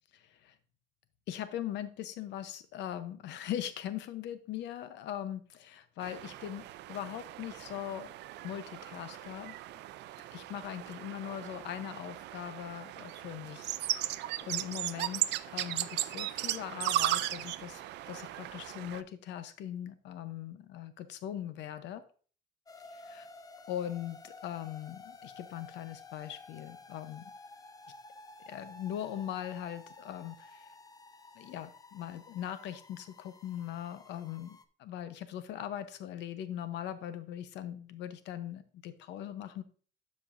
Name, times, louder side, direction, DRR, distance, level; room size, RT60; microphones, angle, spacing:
voice 1, 0.1-0.5 1.3-6.6 6.9-8.1 8.4-9.6 10.3-14.1 14.4-22.0 22.9-23.3 23.7-27.2 28.5-30.7 31.3-39.6, left 11 dB, 80° left, 12 dB, 0.8 m, -40 dB
sound 1, 6.0-19.0, right 14 dB, 75° right, 0.4 m, -37 dB
sound 2, 22.7-34.6, left 3 dB, 20° left, 0.5 m, -52 dB
12.0 x 5.3 x 2.6 m, 0.41 s
cardioid pair, 135°, 18 cm